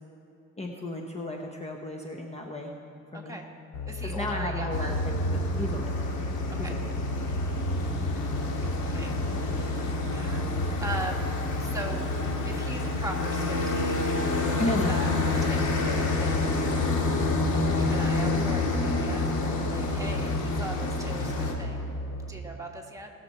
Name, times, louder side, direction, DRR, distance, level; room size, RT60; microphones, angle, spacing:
voice 1, 0.6-2.7 3.1-3.4 4.0-6.0 6.6-7.0 9.9-10.1 14.6-15.3, left 1 dB, 20° left, 1 dB, 1.0 m, -34 dB
voice 2, 3.1-3.5 3.9-4.9 6.6-6.7 8.6-9.8 10.1-10.5 10.8-11.3 11.6-12.1 12.4-14.0 14.6-15.1 15.4-17.2 17.7-21.8 22.3-23.1, right 1 dB, 10° right, 0 dB, 1.8 m, -40 dB
sound 1, 3.7-22.3, equal, 65° left, 1.4 m, -34 dB
sound 2, 4.7-21.5, left 3 dB, 80° left, 1.9 m, -29 dB
19.5 x 6.9 x 4.3 m, 2.8 s
cardioid pair, 90°, 30 cm